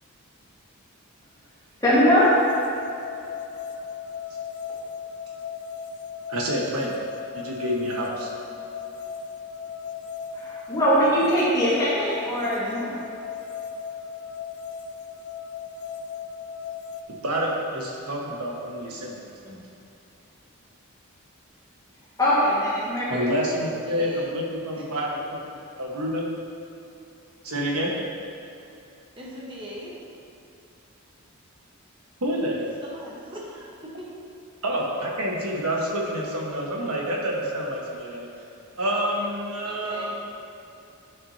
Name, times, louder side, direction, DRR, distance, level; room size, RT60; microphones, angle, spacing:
sound 1, 1.8-17.0, left 6 dB, 75° left, 0.4 m, -37 dB
voice 1, 1.8-2.3 10.3-13.0 22.2-23.3, equal, 15° left, -9 dB, 1.7 m, -21 dB
voice 2, 6.3-7.0 7.3-8.3 17.1-19.7 23.1-25.4 25.8-26.3 27.4-28.0 32.2-32.6 34.6-38.3 38.8-40.1, equal, 85° right, -2 dB, 1.4 m, -28 dB
voice 3, 23.7-24.3 24.7-24.8 29.2-29.9 32.6-34.1 39.6-40.1, equal, 25° right, -4 dB, 1.1 m, -40 dB
10.5 x 6.1 x 2.8 m, 2.7 s
head